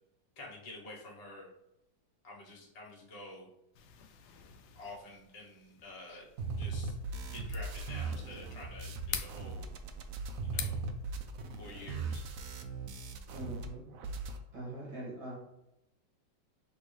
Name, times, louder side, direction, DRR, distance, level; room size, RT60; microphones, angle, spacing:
voice 1, 0.4-1.5 2.2-3.5 4.7-6.3 6.5-6.9 7.3-9.7 10.4-10.8 11.6-12.2, left 2 dB, 35° left, -3 dB, 0.6 m, -49 dB
sound 1, 3.7-12.2, left 9 dB, 75° left, 1.0 m, -47 dB
sound 2, 6.4-13.7 13.9-14.4, right 3 dB, 85° right, 0.7 m, -39 dB
voice 2, 13.3-13.8 14.5-15.3, right 2 dB, 65° right, -5 dB, 2.6 m, -42 dB
6.1 x 2.7 x 3.2 m, 0.84 s
omnidirectional pair, 2.0 m